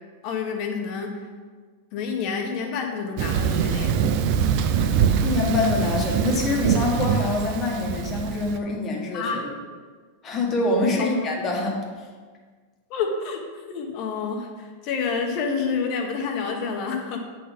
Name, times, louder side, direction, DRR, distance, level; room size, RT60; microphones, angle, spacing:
voice 1, 0.2-1.2 1.9-4.0 9.1-9.4 11.0-11.1 12.9-13.4 13.7-17.2, left 5 dB, 45° left, 2 dB, 1.2 m, -28 dB
Thunder, 3.2-8.6, right 7 dB, 50° right, 0.5 m, -23 dB
voice 2, 5.2-9.4 10.2-11.9, left 2 dB, 25° left, -1 dB, 1.4 m, -25 dB
8.4 x 4.2 x 5.2 m, 1.5 s
supercardioid pair, 145°, 0 cm